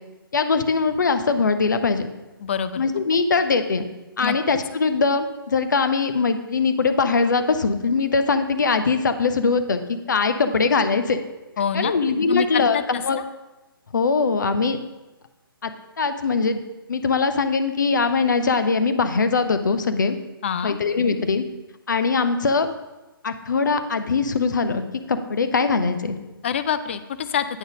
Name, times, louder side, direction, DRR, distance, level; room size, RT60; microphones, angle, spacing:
voice 1, 0.3-2.1 2.8-3.8 4.2-11.2 11.7-13.2 13.9-14.8 15.6-15.7 16.0-16.6 16.9-20.2 20.6-21.4 21.9-22.7 23.2-24.8 25.1-26.2, left 4 dB, 55° left, 9 dB, 0.7 m, -21 dB
voice 2, 2.4-2.8 4.2-4.4 11.6-11.9 12.3-13.0 20.4-20.8 26.4-27.5, left 7 dB, 30° left, 12 dB, 0.4 m, -25 dB
9.1 x 3.9 x 5.1 m, 1.1 s
figure-of-eight pair, 135°, 12 cm